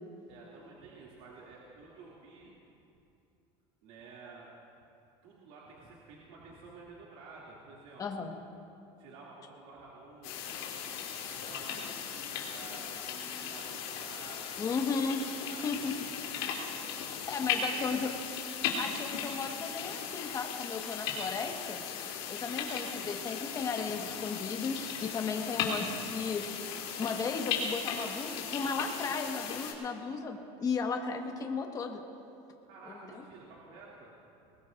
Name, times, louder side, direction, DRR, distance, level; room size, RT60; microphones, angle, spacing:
voice 1, 0.3-2.6 3.8-4.5 5.2-8.1 9.0-10.7 11.3-14.6 15.5-16.6 17.0-18.1 18.6-18.7 22.5-22.8 25.9-26.1 32.6-34.1, right 3 dB, 70° right, -6 dB, 2.7 m, -52 dB
voice 2, 8.0-8.3 14.6-15.4 15.6-15.9 17.3-18.1 18.8-21.8 22.3-26.5 27.0-32.0 32.9-33.2, left 5 dB, 25° left, 3 dB, 1.5 m, -35 dB
sound 1, 10.2-29.7, left 7 dB, 85° left, 3.2 m, -37 dB
22.5 x 19.5 x 2.6 m, 2.7 s
supercardioid pair, 125°, 13 cm